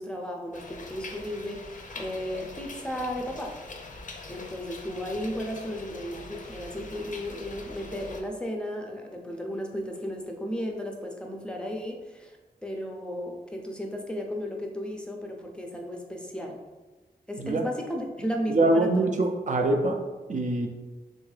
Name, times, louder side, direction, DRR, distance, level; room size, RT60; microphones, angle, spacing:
voice 1, 0.0-3.6 4.3-16.6 17.3-19.1, equal, 5° left, 2 dB, 0.6 m, -34 dB
sound 1, 0.5-8.2, left 3 dB, 55° left, 0.5 m, -43 dB
voice 2, 18.5-20.0 20.3-20.7, right 2 dB, 50° right, 3 dB, 0.5 m, -24 dB
3.7 x 2.6 x 3.2 m, 1.2 s
wide cardioid pair, 90°, 16 cm